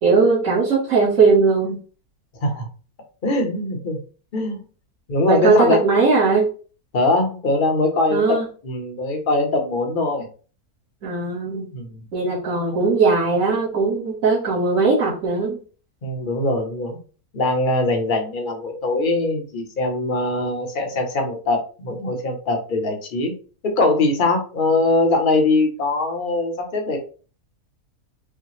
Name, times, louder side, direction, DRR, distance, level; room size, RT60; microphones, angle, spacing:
voice 1, 0.0-1.8 5.3-6.4 8.1-8.4 11.0-11.7 12.1-15.6, right 4 dB, 55° right, -8 dB, 1.6 m, -19 dB
voice 2, 3.2-4.0 4.3-4.6 5.1-5.8 6.9-8.4 8.6-10.3 11.7-12.0 16.0-17.0 17.3-23.3 23.6-27.0, left 2 dB, 40° left, 2 dB, 0.9 m, -21 dB
5.5 x 2.2 x 3.2 m, 0.38 s
omnidirectional pair, 1.6 m